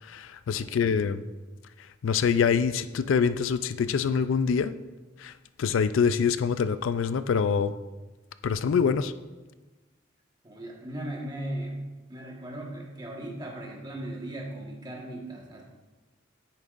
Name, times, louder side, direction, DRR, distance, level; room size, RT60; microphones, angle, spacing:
voice 1, 0.0-1.2 2.0-4.7 5.2-5.3 5.6-7.7 8.4-9.1, left 6 dB, 85° left, 13 dB, 0.4 m, -25 dB
voice 2, 0.5-0.8 10.4-11.8 12.1-15.6, right 1 dB, 20° right, -2 dB, 1.4 m, -37 dB
9.7 x 8.8 x 2.5 m, 1.2 s
head